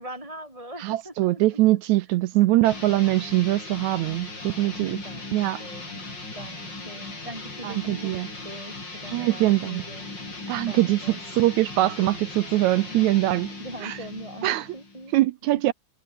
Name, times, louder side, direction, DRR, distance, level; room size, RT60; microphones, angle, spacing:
voice 1, 0.0-2.1 2.5-2.8 4.4-5.3 5.6-6.0 6.3-10.1 10.7-11.2 12.0-12.1 12.9-13.1 13.6-15.1 15.5-15.7, right 1 dB, 10° right, 4.2 m, -42 dB
voice 2, 0.8-5.0 5.3-5.6 7.6-8.3 9.1-9.8 10.5-11.0 11.3-13.5 13.8-14.0 14.4-14.7 15.1-15.7, right 16 dB, 75° right, 1.8 m, -22 dB
sound 1, 2.6-15.2, left 2 dB, 30° left, 6.7 m, -38 dB
omnidirectional pair, 3.7 m